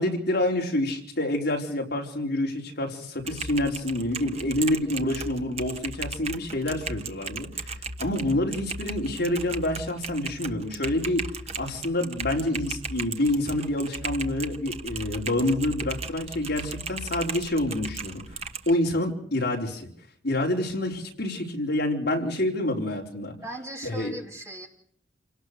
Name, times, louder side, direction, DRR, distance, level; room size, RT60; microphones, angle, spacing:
voice 1, 0.0-11.3 11.6-18.2 18.7-19.9 20.2-23.3 23.8-24.1, left 1 dB, 50° left, 0 dB, 4.4 m, -27 dB
Typing, 3.2-18.7, right 4 dB, 30° right, 1.2 m, -36 dB
voice 2, 23.4-24.7, right 1 dB, 15° right, 1 dB, 3.2 m, -38 dB
28.5 x 18.5 x 6.8 m, 0.66 s
head